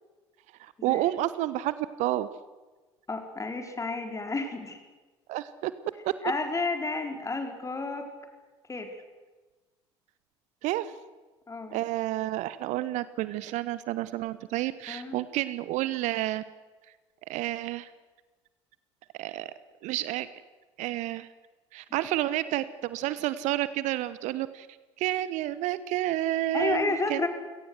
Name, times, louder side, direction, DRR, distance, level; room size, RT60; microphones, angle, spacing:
voice 1, 0.6-2.3 5.3-5.7 10.6-10.9 11.7-16.4 17.3-17.9 19.2-19.5 19.8-20.3 20.8-21.3 21.7-24.7 25.0-27.3, right 15 dB, 55° right, 16 dB, 1.0 m, -30 dB
voice 2, 3.1-4.8 6.2-8.1 8.7-8.9 11.5-11.8 14.9-15.2 26.5-27.3, left 3 dB, 20° left, 5 dB, 4.5 m, -31 dB
29.0 x 17.5 x 7.9 m, 1.2 s
figure-of-eight pair, 60°, 15 cm